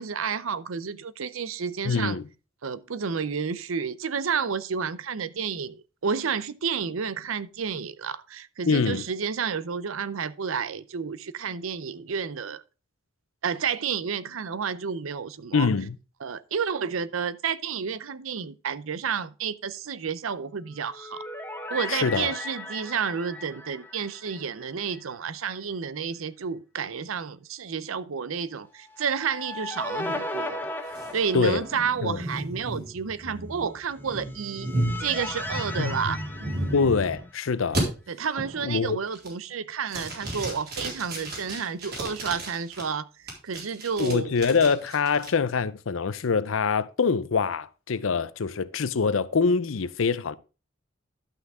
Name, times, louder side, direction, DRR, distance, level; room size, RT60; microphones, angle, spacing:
voice 1, 0.0-2.2 2.6-12.6 13.4-15.7 16.2-21.2 21.7-30.7 31.1-34.7 35.0-36.3 38.1-43.1 43.4-44.3, right 6 dB, 80° right, 0.6 m, -30 dB
voice 2, 1.8-2.2 8.6-9.0 15.5-16.0 21.9-22.3 31.3-31.6 32.0-32.2 35.8-36.1 36.7-37.8 38.6-39.0 44.0-50.4, left 5 dB, 70° left, 0.6 m, -24 dB
sound 1, 20.7-25.0 25.3-25.4 28.9-32.0 34.1-37.5, left 1 dB, 10° left, 1.1 m, -37 dB
sound 2, 30.9-37.3 37.7-37.8 38.4-38.7 39.1-39.5 39.9-42.8 43.3-45.3, right 1 dB, 55° right, 3.8 m, -34 dB
11.5 x 6.0 x 3.6 m
head